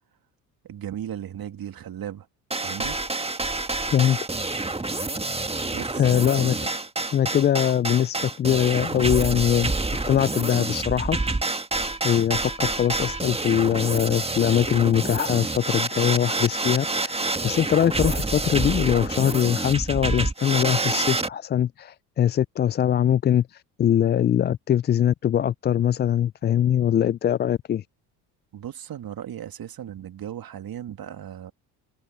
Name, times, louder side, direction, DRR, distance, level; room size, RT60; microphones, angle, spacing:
voice 1, 0.6-2.3 2.6-3.0 5.7-6.1 28.5-31.5, right 10 dB, 45° right, 2.4 m, -36 dB
sound 1, 2.5-21.3, right 2 dB, 10° right, 1.7 m, -28 dB
voice 2, 6.0-6.6 7.1-11.2 12.0-27.8, left 10 dB, 25° left, 0.3 m, -22 dB
hypercardioid pair, 65°, 47 cm